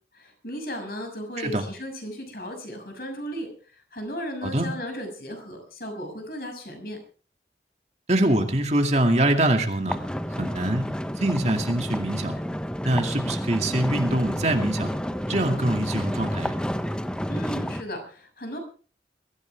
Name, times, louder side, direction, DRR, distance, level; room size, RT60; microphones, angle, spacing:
voice 1, 0.2-3.5 3.9-7.0 17.3-18.6, equal, 55° left, 5 dB, 6.4 m, -35 dB
voice 2, 8.1-10.0 10.4-10.9 11.2-12.4 12.8-14.9 15.3-16.6, right 1 dB, 40° right, 4 dB, 2.3 m, -24 dB
sound 1, 9.9-17.8, equal, 5° left, 0.8 m, -30 dB
22.5 x 15.5 x 3.4 m, 0.39 s
head